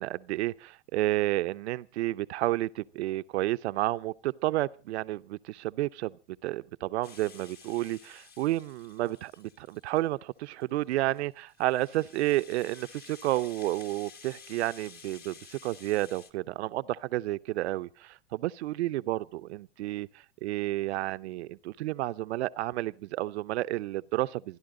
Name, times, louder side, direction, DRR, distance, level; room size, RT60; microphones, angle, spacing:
voice 1, 0.0-6.2 6.4-20.1 20.4-24.6, right 17 dB, 70° right, 0.8 m, -31 dB
Rattle (instrument), 7.0-10.1 10.6-16.3, left 6 dB, 25° left, 1.6 m, -52 dB
29.0 x 11.5 x 3.8 m
hypercardioid pair, 120°, 34 cm